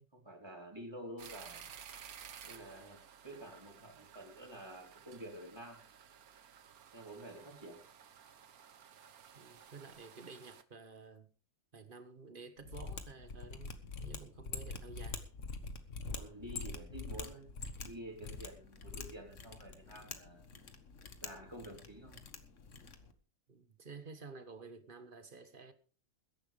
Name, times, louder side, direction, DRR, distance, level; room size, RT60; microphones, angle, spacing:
voice 1, 0.0-1.6 2.4-3.0 3.2-5.8 6.9-7.8 16.0-17.5 17.8-20.5 21.2-22.2, right 1 dB, 15° right, 3.7 m, -49 dB
sound 1, 1.2-10.6, right 8 dB, 75° right, 1.5 m, -55 dB
voice 2, 9.3-11.3 11.7-13.7 14.0-15.3 23.5-25.7, right 4 dB, 35° right, 1.6 m, -52 dB
Mechanisms, 12.6-23.1, left 4 dB, 55° left, 1.7 m, -45 dB
21.5 x 10.5 x 3.4 m
omnidirectional pair, 1.6 m